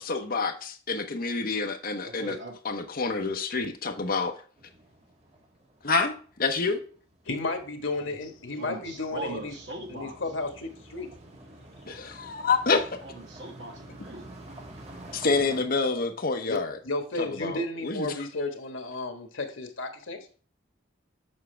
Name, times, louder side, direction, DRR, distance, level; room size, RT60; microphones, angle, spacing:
voice 1, 0.0-2.4 2.6-4.4 5.8-6.8 11.9-12.9 15.1-16.8 17.2-18.2, left 4 dB, 50° left, 6 dB, 0.9 m, -28 dB
voice 2, 2.0-2.6 8.6-10.2 13.0-14.4, right 2 dB, 65° right, 0 dB, 2.1 m, -40 dB
sound 1, 4.6-15.7, right 1 dB, 35° right, 1.5 m, -49 dB
voice 3, 7.2-9.5 9.9-11.1 16.5-20.3, left 2 dB, 90° left, 6 dB, 1.4 m, -33 dB
7.4 x 5.9 x 3.3 m, 0.41 s
head